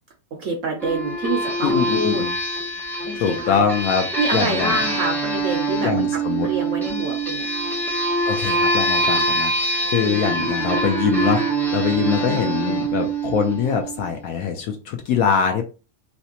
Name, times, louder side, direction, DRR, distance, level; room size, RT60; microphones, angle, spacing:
voice 1, 0.3-2.2 3.1-3.6 4.2-7.5 10.0-10.7 12.0-12.8, right 3 dB, 65° right, 3 dB, 0.8 m, -27 dB
sound 1, 0.8-14.0, right 2 dB, 5° left, 0.3 m, -24 dB
voice 2, 1.6-2.3 3.2-4.1 4.3-4.8 5.8-6.5 8.3-11.4 11.7-15.7, left 7 dB, 70° left, 4 dB, 0.9 m, -23 dB
3.2 x 2.8 x 2.8 m, 0.32 s
omnidirectional pair, 1.8 m